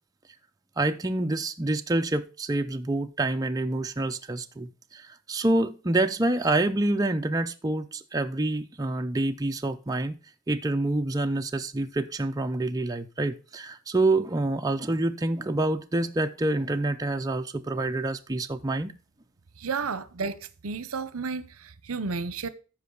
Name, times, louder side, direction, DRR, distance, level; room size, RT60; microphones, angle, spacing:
voice 1, 0.8-10.1 10.5-18.9, right 2 dB, 15° right, 0.5 m, -27 dB
voice 2, 19.6-22.5, right 4 dB, 75° right, 0.8 m, -32 dB
13.5 x 5.3 x 3.9 m
head